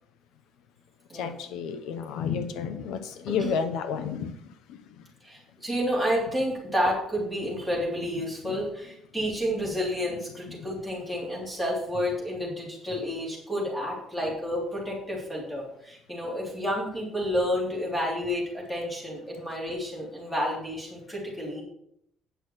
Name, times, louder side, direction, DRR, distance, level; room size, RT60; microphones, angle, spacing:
voice 1, 1.1-4.4 4.7-4.8 8.4-8.5 10.5-10.6, left 6 dB, 80° left, 10 dB, 0.9 m, -31 dB
voice 2, 5.2-21.6, equal, 5° left, -3 dB, 3.3 m, -30 dB
9.2 x 6.3 x 6.4 m, 0.72 s
cardioid pair, 175°, 0 cm